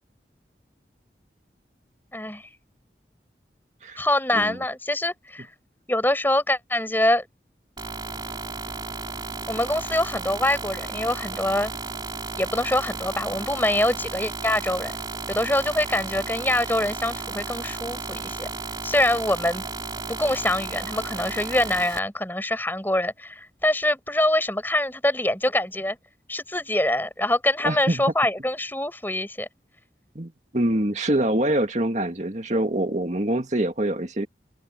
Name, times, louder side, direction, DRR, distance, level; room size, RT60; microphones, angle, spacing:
voice 1, 2.1-2.4 4.0-5.5 5.9-7.3 9.5-11.7 12.4-14.9 15.3-18.5 18.8-19.6 20.1-26.0 26.3-29.5, left 1 dB, 10° left, 6.0 m, -24 dB
sound 1, 7.8-22.0, right 3 dB, 25° right, 3.0 m, -34 dB
voice 2, 27.6-28.0 30.2-34.3, right 1 dB, 40° right, 2.1 m, -25 dB
open air
head